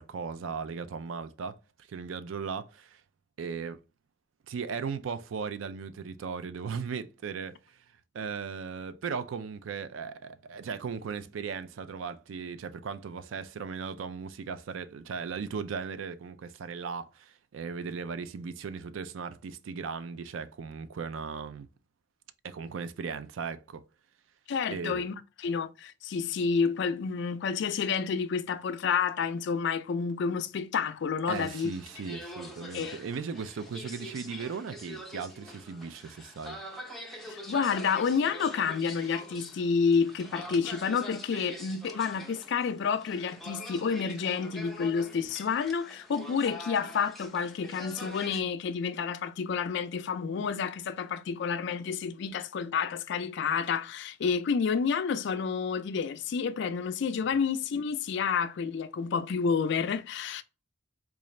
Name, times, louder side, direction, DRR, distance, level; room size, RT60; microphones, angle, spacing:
voice 1, 0.0-1.6 1.9-3.0 3.4-3.8 4.5-7.8 8.1-21.7 22.4-23.8 24.7-25.0 31.3-36.6, right 5 dB, 85° right, 0.4 m, -37 dB
voice 2, 24.5-31.7 32.7-33.0 37.3-60.4, left 6 dB, 65° left, 0.4 m, -29 dB
sound 1, 31.3-48.4, left 1 dB, ahead, 0.6 m, -45 dB
3.9 x 2.4 x 3.1 m
head